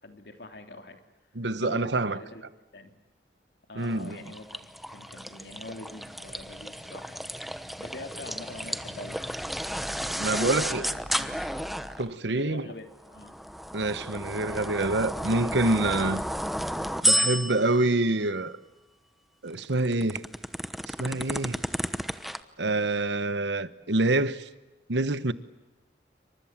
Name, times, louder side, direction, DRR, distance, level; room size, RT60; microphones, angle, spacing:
voice 1, 0.0-1.0 1.6-2.4 2.7-3.0 3.7-4.5 4.9-7.3 7.8-9.2 10.4-10.8 11.1-11.4 12.3-13.3, left 2 dB, 75° left, 3.2 m, -43 dB
voice 2, 1.3-2.2 3.8-4.2 10.2-10.8 12.0-12.7 13.7-16.2 17.0-18.6 19.4-20.2 20.9-21.6 22.6-24.5 24.9-25.3, right 2 dB, 90° right, 1.2 m, -26 dB
sound 1, 3.9-12.1 13.0-17.8 19.5-22.4, equal, ahead, 1.0 m, -32 dB
28.0 x 25.5 x 7.5 m
head